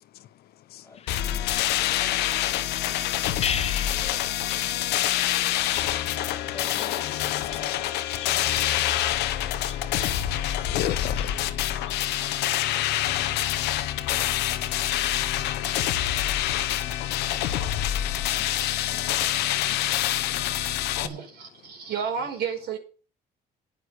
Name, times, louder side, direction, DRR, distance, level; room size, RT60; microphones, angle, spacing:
sound 1, 0.9-19.3, left 7 dB, 35° left, 0.9 m, -42 dB
sound 2, 1.1-21.1, left 12 dB, 85° left, 1.2 m, -26 dB
voice 1, 6.5-7.9, left 3 dB, 15° left, 2.1 m, -50 dB
voice 2, 10.6-11.4 16.5-16.6 17.4-17.5 18.4-18.5 18.9-19.0 19.7-20.8, left 12 dB, 65° left, 0.9 m, -38 dB
voice 3, 19.3-19.6 20.1-20.2 20.5-22.8, right 7 dB, 70° right, 4.9 m, -33 dB
9.9 x 9.7 x 6.7 m
cardioid pair, 110°, 17 cm